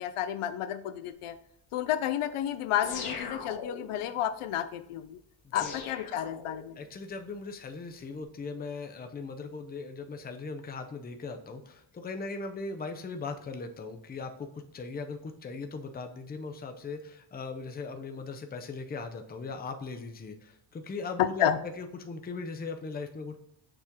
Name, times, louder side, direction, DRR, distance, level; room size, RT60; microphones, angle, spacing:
voice 1, 0.0-1.4 1.7-5.2 5.5-6.8 21.2-21.6, left 11 dB, 90° left, 12 dB, 0.7 m, -31 dB
sound 1, 2.8-4.1 5.6-6.9, left 5 dB, 45° left, 1.1 m, -39 dB
voice 2, 5.4-5.8 6.8-23.4, left 4 dB, 20° left, 6 dB, 0.5 m, -39 dB
6.9 x 4.4 x 3.6 m, 0.71 s
cardioid pair, 160°, 50 cm